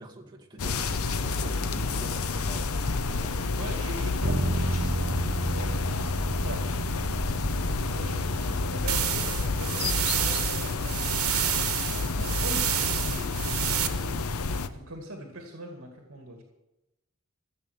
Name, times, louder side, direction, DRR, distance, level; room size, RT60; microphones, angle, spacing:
voice 1, 0.0-3.5, right 1 dB, 20° right, -1 dB, 2.3 m, -44 dB
sound 1, 0.6-14.7, left 3 dB, 85° left, 0.8 m, -29 dB
voice 2, 3.5-5.7 6.4-6.6 7.9-11.3 11.8-14.3 14.5-16.4, right 1 dB, 65° right, 2 dB, 2.2 m, -41 dB
sound 2, 4.2-14.0, right 1 dB, 35° right, 1.0 m, -34 dB
sound 3, 8.9-13.9, right 10 dB, 85° right, 1.3 m, -29 dB
15.0 x 7.5 x 8.1 m, 0.97 s
head